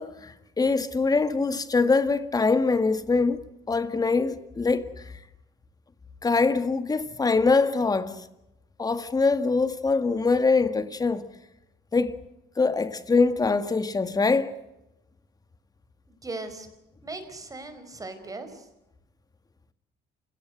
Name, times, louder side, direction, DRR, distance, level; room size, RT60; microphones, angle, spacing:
voice 1, 0.0-3.4 3.7-4.9 6.2-8.1 8.8-11.3 11.9-12.2 12.6-14.5, left 4 dB, 20° left, 1.8 m, -23 dB
voice 2, 16.1-16.7 17.0-18.6, right 3 dB, 20° right, 4.9 m, -38 dB
28.5 x 17.5 x 8.0 m
cardioid pair, 110°, 17 cm